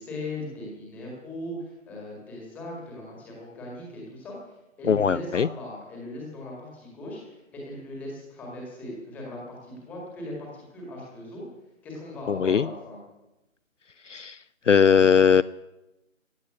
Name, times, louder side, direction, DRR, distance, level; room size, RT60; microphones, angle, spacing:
voice 1, 0.0-4.4 4.8-11.4 11.8-13.0, left 1 dB, 5° left, -3 dB, 1.9 m, -38 dB
voice 2, 4.9-5.5 12.3-12.7 14.1-14.4 14.7-15.4, left 7 dB, 65° left, 19 dB, 0.5 m, -19 dB
16.0 x 7.9 x 9.7 m, 0.98 s
figure-of-eight pair, 160°, 40 cm